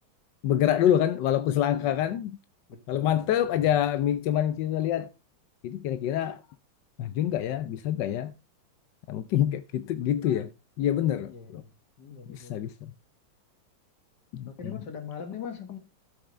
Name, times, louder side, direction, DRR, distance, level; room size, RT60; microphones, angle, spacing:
voice 1, 0.4-2.4 2.9-5.1 5.6-6.4 7.0-8.3 9.1-10.5 10.8-11.6 12.3-12.7 14.3-14.7, left 11 dB, 70° left, 1.2 m, -26 dB
voice 2, 1.7-2.1 2.7-3.3 11.3-11.7 12.0-12.6 14.5-15.8, left 7 dB, 55° left, 2.2 m, -41 dB
13.5 x 8.0 x 3.3 m
omnidirectional pair, 2.3 m